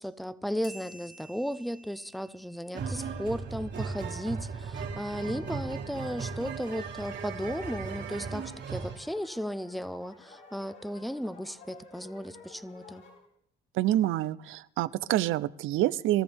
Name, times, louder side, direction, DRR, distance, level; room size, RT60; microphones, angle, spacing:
voice 1, 0.0-13.1, equal, ahead, 15 dB, 0.6 m, -35 dB
sound 1, 0.6-3.7, right 1 dB, 60° left, 6.5 m, -53 dB
sound 2, 2.7-9.0, right 5 dB, 60° right, 2.0 m, -37 dB
sound 3, 5.8-13.2, left 3 dB, 80° left, 6.4 m, -53 dB
voice 2, 13.8-16.2, right 14 dB, 85° right, 16 dB, 0.6 m, -27 dB
22.5 x 14.0 x 3.5 m, 0.67 s
cardioid pair, 90°, 20 cm